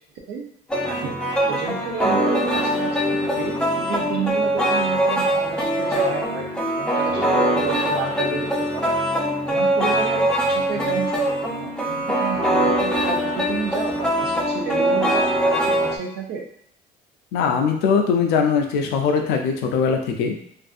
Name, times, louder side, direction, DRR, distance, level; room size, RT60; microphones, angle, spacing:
sound 1, 0.7-16.0, right 1 dB, 5° left, 0.5 m, -22 dB
voice 1, 1.5-6.5 6.8-9.1 9.5-16.4, right 6 dB, 70° right, 0 dB, 0.7 m, -31 dB
voice 2, 17.3-20.4, left 6 dB, 90° left, 4 dB, 0.5 m, -21 dB
2.5 x 2.5 x 2.4 m, 0.68 s
cardioid pair, 110°, 17 cm